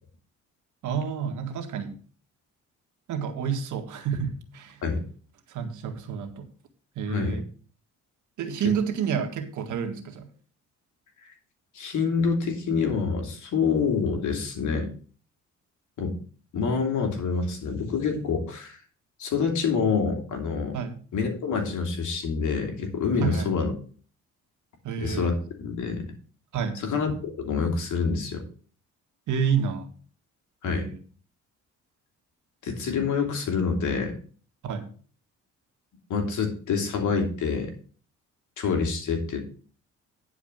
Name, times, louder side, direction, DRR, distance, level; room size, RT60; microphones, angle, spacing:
voice 1, 0.8-1.9 3.1-4.8 5.5-6.5 7.0-7.4 8.4-10.3 20.7-21.0 23.2-23.5 24.8-25.3 26.5-26.8 29.3-29.9 30.6-31.0 34.6-34.9, right 7 dB, 75° right, 5 dB, 1.8 m, -29 dB
voice 2, 11.7-14.9 16.0-16.2 16.5-18.8 19.2-20.8 21.1-23.7 25.0-26.1 26.8-28.4 30.6-30.9 32.6-34.2 36.1-37.7 38.6-39.4, left 5 dB, 75° left, 4 dB, 2.8 m, -27 dB
10.5 x 4.9 x 6.6 m, 0.41 s
cardioid pair, 90°, 30 cm